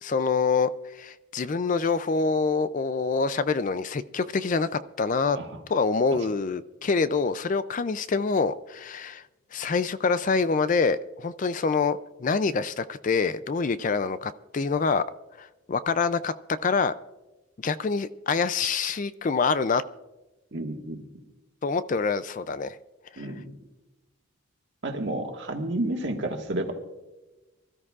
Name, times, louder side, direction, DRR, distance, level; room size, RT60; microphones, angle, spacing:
voice 1, 0.0-5.4 5.7-9.2 9.5-15.0 15.4-16.3 16.6-16.9 17.6-19.8 21.6-22.8 23.1-23.3, left 4 dB, 35° left, 14 dB, 0.4 m, -26 dB
voice 2, 20.5-21.0 23.2-23.5 24.8-26.7, right 1 dB, 55° right, 2 dB, 1.7 m, -31 dB
25.0 x 13.5 x 2.4 m, 1.1 s
head